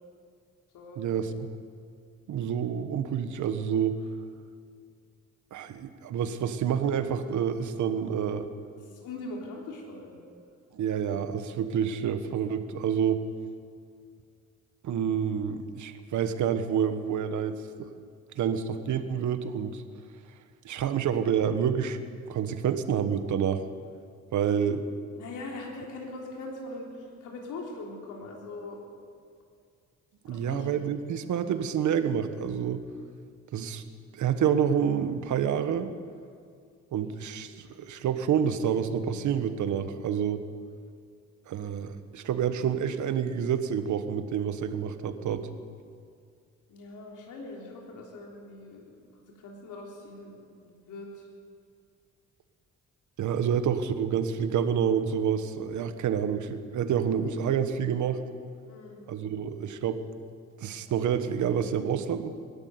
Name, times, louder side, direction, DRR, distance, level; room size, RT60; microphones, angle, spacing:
voice 1, 1.0-1.3 2.3-4.0 5.5-8.5 10.7-13.2 14.8-17.9 18.3-19.8 20.6-22.0 22.3-23.6 24.3-24.8 30.2-32.8 33.5-33.8 34.1-35.9 36.9-40.5 41.5-45.5 53.2-58.2 59.1-60.0 60.6-62.3, right 8 dB, 75° right, 9 dB, 1.5 m, -28 dB
voice 2, 8.8-10.2 24.4-24.5 25.1-28.8 30.3-30.7 46.7-51.3 58.7-59.0, left 2 dB, 85° left, -1 dB, 3.6 m, -42 dB
22.0 x 12.5 x 9.6 m, 2.2 s
cardioid pair, 90°, 30 cm